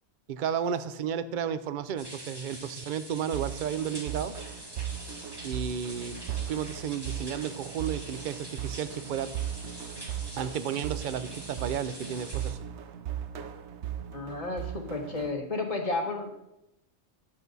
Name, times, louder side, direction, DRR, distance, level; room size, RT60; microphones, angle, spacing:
voice 1, 0.3-4.3 5.4-6.2 6.4-9.3 10.4-12.6, right 8 dB, 55° right, 13 dB, 0.7 m, -32 dB
sound 1, 2.0-12.5, right 1 dB, 20° right, 1.4 m, -45 dB
sound 2, 3.3-15.3, right 10 dB, 85° right, 1.0 m, -38 dB
voice 2, 14.1-16.3, left 3 dB, 35° left, 0 dB, 1.5 m, -32 dB
10.5 x 8.2 x 4.1 m, 0.88 s
omnidirectional pair, 1.1 m